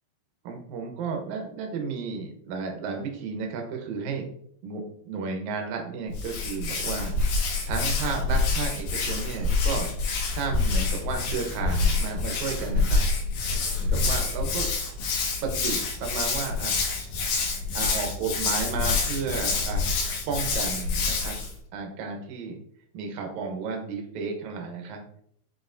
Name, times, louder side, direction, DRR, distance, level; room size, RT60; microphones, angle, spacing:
voice 1, 0.4-4.3 4.6-9.9 10.3-13.0 13.8-14.7 15.4-16.8 17.7-19.9 20.3-21.4 21.7-22.6 22.9-25.0, right 5 dB, 80° right, 2 dB, 1.7 m, -33 dB
Hands, 6.1-21.5, left 4 dB, 85° left, 3.8 m, -27 dB
9.5 x 4.3 x 2.6 m, 0.66 s
omnidirectional pair, 4.9 m